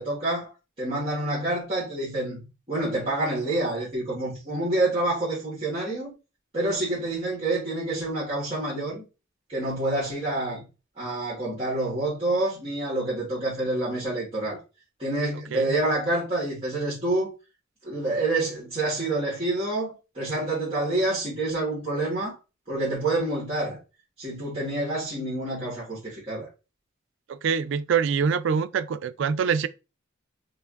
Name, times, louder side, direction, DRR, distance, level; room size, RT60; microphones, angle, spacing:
voice 1, 0.0-6.1 6.5-9.0 9.5-10.6 11.0-14.6 15.0-17.3 17.8-22.4 22.7-23.8 24.2-26.5, right 2 dB, 30° right, 1.5 m, -27 dB
voice 2, 27.3-29.7, right 6 dB, 65° right, 0.3 m, -25 dB
4.7 x 2.5 x 2.4 m
head